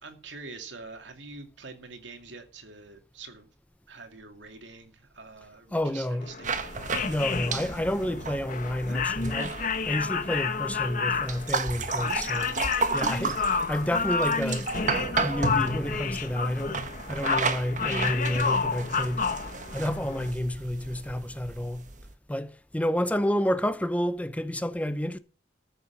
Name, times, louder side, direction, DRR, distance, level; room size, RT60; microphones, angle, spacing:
voice 1, 0.0-3.5 3.9-6.5 7.0-7.2 12.5-13.0, right 4 dB, 90° right, 2.4 m, -45 dB
voice 2, 5.7-6.3 7.1-12.6 12.9-14.7 15.2-19.3 19.7-21.9 22.3-25.2, equal, 10° left, 0.6 m, -30 dB
sound 1, 6.2-20.3, left 5 dB, 45° left, 1.3 m, -30 dB
sound 2, 6.4-22.1, right 4 dB, 45° right, 1.2 m, -33 dB
13.5 x 6.8 x 6.0 m
head